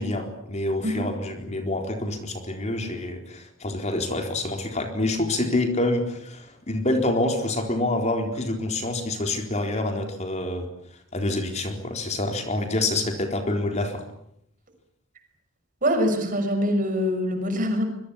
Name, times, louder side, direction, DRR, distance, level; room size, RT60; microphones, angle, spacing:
voice 1, 0.0-10.7 11.1-14.0, left 2 dB, 35° left, 5 dB, 4.0 m, -27 dB
voice 2, 15.8-17.8, equal, 40° right, 6 dB, 6.2 m, -24 dB
25.5 x 22.5 x 8.7 m, 0.73 s
head